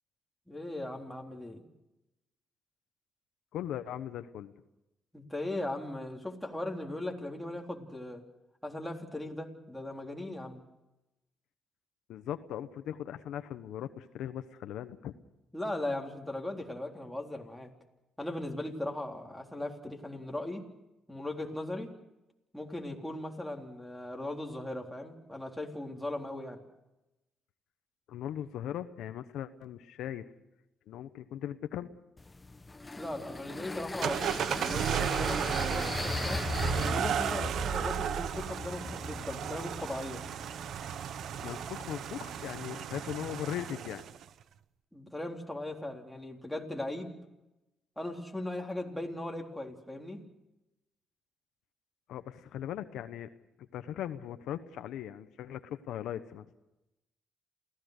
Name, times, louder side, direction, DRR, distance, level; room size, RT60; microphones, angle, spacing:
voice 1, 0.5-1.6 5.1-8.2 8.6-10.6 15.5-17.7 18.2-20.6 21.1-21.9 22.5-26.6 33.0-34.2 34.7-36.4 36.7-40.2 44.9-47.1 48.0-50.2, left 1 dB, 5° left, 0 dB, 3.7 m, -38 dB
voice 2, 3.5-4.5 12.1-15.1 28.1-30.3 30.9-31.9 41.4-44.0 52.1-53.3 53.6-56.4, left 11 dB, 85° left, 10 dB, 1.0 m, -39 dB
sound 1, 32.2-42.6, left 3 dB, 20° left, 0.9 m, -39 dB
sound 2, 34.0-44.2, right 9 dB, 70° right, 0.8 m, -34 dB
28.5 x 16.5 x 6.6 m, 0.96 s
cardioid pair, 90°, 0 cm